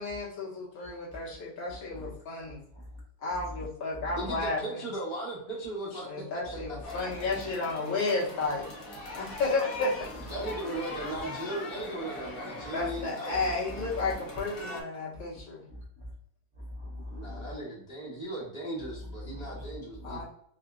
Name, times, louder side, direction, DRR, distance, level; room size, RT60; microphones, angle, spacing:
voice 1, 0.0-2.6 3.2-4.6 6.1-8.7 9.1-9.9 12.7-15.6 20.0-20.2, left 3 dB, 75° left, -5 dB, 2.0 m, -32 dB
voice 2, 1.7-2.1 2.5-3.0 3.5-3.7 3.9-4.4 6.4-7.5 10.3-10.6 12.8-13.0 13.4-14.1 15.1-15.2 15.7-16.1 16.6-17.5 18.8-18.9 19.2-20.2, left 1 dB, 50° right, -3 dB, 1.4 m, -43 dB
voice 3, 4.1-6.1 10.3-13.4 17.2-20.2, right 1 dB, 25° right, -7 dB, 0.7 m, -37 dB
sound 1, 6.8-14.8, left 2 dB, 55° left, 1.1 m, -41 dB
5.2 x 2.3 x 2.5 m, 0.67 s
omnidirectional pair, 2.2 m